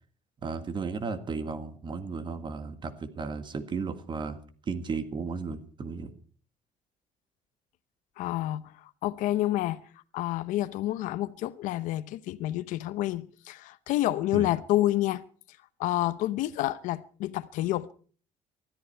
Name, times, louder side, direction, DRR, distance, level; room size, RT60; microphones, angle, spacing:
voice 1, 0.4-4.4 4.7-6.1 14.3-14.5, right 4 dB, 35° right, 1.7 m, -34 dB
voice 2, 8.2-9.8 10.1-15.2 15.8-17.9, left 15 dB, 85° left, 0.7 m, -29 dB
20.0 x 13.5 x 4.5 m
cardioid pair, 120°, 13 cm